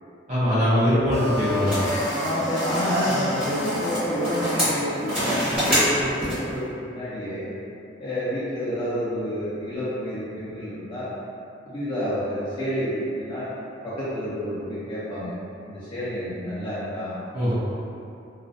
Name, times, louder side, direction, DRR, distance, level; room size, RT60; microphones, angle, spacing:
voice 1, 0.3-1.8 17.3-17.5, equal, 45° right, -13 dB, 0.6 m, -21 dB
sound 1, 1.1-6.6, equal, 5° right, 0.8 m, -26 dB
voice 2, 2.1-7.4 8.0-11.1 11.7-13.5 13.8-15.3 15.7-17.2, equal, 30° left, -12 dB, 0.5 m, -29 dB
2.3 x 2.1 x 2.5 m, 2.7 s
head